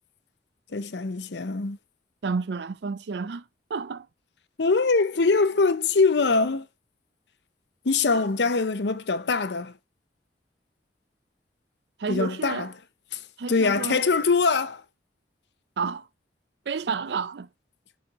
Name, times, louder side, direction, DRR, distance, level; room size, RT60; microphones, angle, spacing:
voice 1, 0.7-1.8 4.6-6.7 7.8-9.7 12.1-12.7 13.1-13.2 13.5-14.8, left 4 dB, 70° left, 0.7 m, -23 dB
voice 2, 2.2-3.4 3.7-4.1 8.1-8.2 12.0-12.7 13.4-14.0 15.8-16.1 16.7-17.5, right 5 dB, 70° right, 0.5 m, -30 dB
7.3 x 4.4 x 5.1 m
head